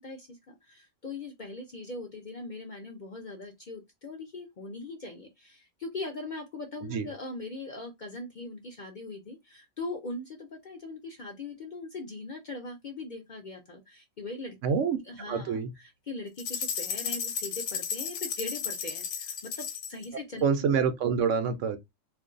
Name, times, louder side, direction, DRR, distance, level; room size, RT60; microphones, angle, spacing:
voice 1, 0.0-14.6 15.0-20.7, left 2 dB, 50° left, 0.6 m, -40 dB
voice 2, 14.6-15.0 15.3-15.7 20.4-21.8, right 6 dB, 75° right, 0.9 m, -26 dB
sound 1, 16.4-20.1, left 7 dB, 70° left, 0.9 m, -34 dB
2.5 x 2.3 x 3.7 m
omnidirectional pair, 1.4 m